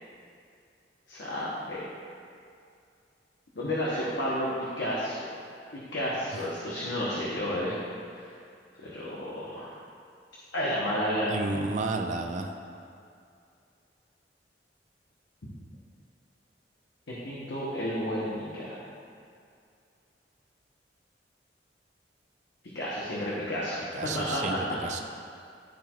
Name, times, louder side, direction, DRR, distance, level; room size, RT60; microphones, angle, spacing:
voice 1, 1.1-1.9 3.5-4.5 4.8-5.3 5.7-7.8 8.8-9.8 10.5-11.3 15.4-15.5 17.1-18.8 22.7-24.8, equal, 85° left, -7 dB, 1.1 m, -31 dB
voice 2, 11.3-12.5 23.9-25.0, right 3 dB, 45° right, 3 dB, 0.4 m, -31 dB
11.5 x 4.4 x 2.4 m, 2.4 s
head